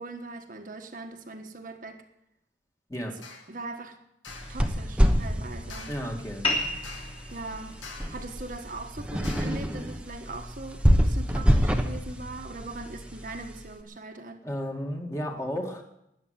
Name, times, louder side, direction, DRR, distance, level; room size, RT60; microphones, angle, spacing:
voice 1, 0.0-2.0 3.1-3.2 3.5-4.0 4.5-5.9 7.3-7.8 8.1-14.4, right 3 dB, 45° right, 4 dB, 1.3 m, -40 dB
sound 1, 3.2-3.5 4.2-4.6 5.7-6.2 6.8-7.3 7.8-8.3 9.2-9.7, left 4 dB, 85° left, 2.2 m, -45 dB
sound 2, 4.3-13.7, equal, 5° right, 1.1 m, -27 dB
voice 2, 5.9-6.5 14.4-15.8, equal, 15° left, 2 dB, 2.0 m, -33 dB
sound 3, 6.4-11.5, left 2 dB, 35° left, 3.2 m, -36 dB
13.0 x 10.0 x 9.4 m, 0.83 s
head